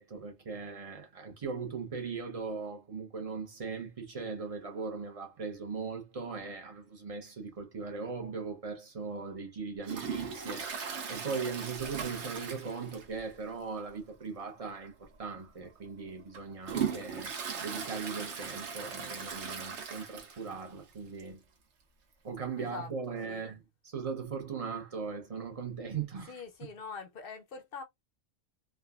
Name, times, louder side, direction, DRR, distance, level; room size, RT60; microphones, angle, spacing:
voice 1, 0.0-10.7 11.1-21.4 22.2-23.6 23.8-26.4, right 5 dB, 35° right, 0.6 m, -39 dB
Toilet flush, 9.8-13.3 13.6-13.7 14.1-14.2 15.0-15.1 15.7-20.6 20.9-21.0 21.2-21.3 22.3-22.4, right 6 dB, 70° right, 1.0 m, -38 dB
voice 2, 22.6-23.6 26.3-27.8, left 5 dB, 55° left, 0.8 m, -44 dB
3.4 x 2.2 x 2.3 m
omnidirectional pair, 1.3 m